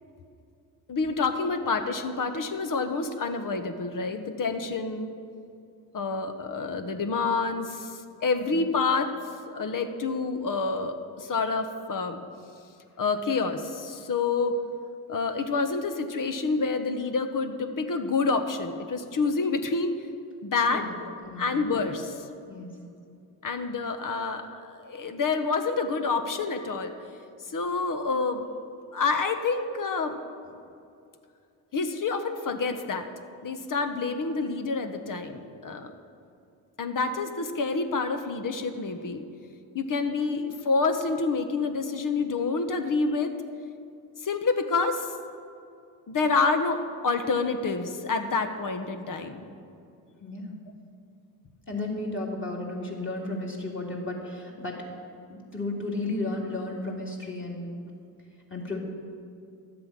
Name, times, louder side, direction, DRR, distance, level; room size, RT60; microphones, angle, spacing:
voice 1, 0.9-5.1 5.9-9.1 9.5-12.2 13.0-14.6 15.1-19.9 20.4-22.2 23.4-26.9 27.5-28.4 28.9-30.1 31.7-33.1 33.4-35.9 36.8-39.2 39.7-43.3 44.2-45.1 46.1-49.4, left 4 dB, 40° left, 7 dB, 1.2 m, -28 dB
voice 2, 50.2-50.5 51.7-54.8 55.3-57.7 58.5-58.8, left 2 dB, 25° left, -2 dB, 3.2 m, -33 dB
12.0 x 7.6 x 6.0 m, 2.5 s
hypercardioid pair, 60°, 49 cm